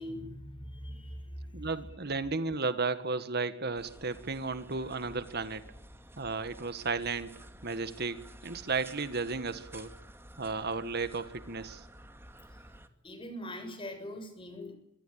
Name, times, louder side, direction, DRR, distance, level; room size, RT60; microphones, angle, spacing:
voice 1, 0.0-1.7 13.0-14.8, left 1 dB, 25° left, 8 dB, 7.1 m, -42 dB
voice 2, 1.5-5.7 6.2-7.3 7.6-9.9 10.4-11.8, right 4 dB, 55° right, 11 dB, 1.7 m, -34 dB
sound 1, 3.7-12.9, right 1 dB, 10° right, 2.5 m, -52 dB
25.0 x 24.0 x 8.9 m, 0.81 s
head